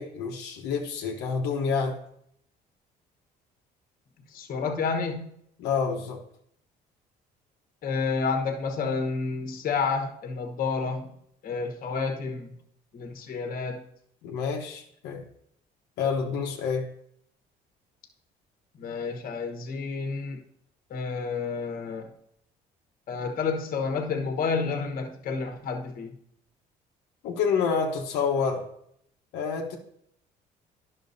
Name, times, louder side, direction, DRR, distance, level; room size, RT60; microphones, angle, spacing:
voice 1, 0.0-2.0 5.6-6.2 14.2-15.2 16.0-16.9 27.2-28.6 29.3-29.8, left 5 dB, 90° left, 0 dB, 1.0 m, -28 dB
voice 2, 4.3-5.3 7.8-11.1 11.4-12.5 12.9-13.8 18.8-20.4 20.9-22.1 23.1-26.1, left 5 dB, 55° left, 4 dB, 1.2 m, -30 dB
10.5 x 6.1 x 2.6 m, 0.70 s
cardioid pair, 110°, 17 cm